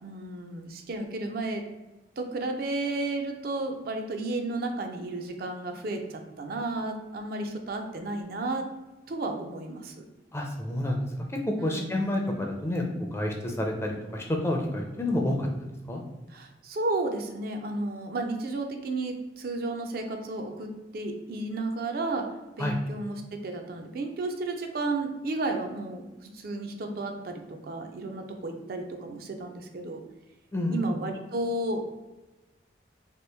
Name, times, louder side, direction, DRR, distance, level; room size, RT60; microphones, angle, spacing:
voice 1, 0.0-1.6 2.2-8.6 9.1-10.0 11.6-11.9 16.3-20.7 20.9-22.3 22.6-26.1 26.3-30.0 30.7-31.9, right 2 dB, 55° right, 4 dB, 0.4 m, -32 dB
voice 2, 10.3-11.0 11.4-16.0 22.6-22.8 30.5-30.9, left 1 dB, 15° left, 1 dB, 0.4 m, -29 dB
2.9 x 2.5 x 3.3 m, 1.1 s
head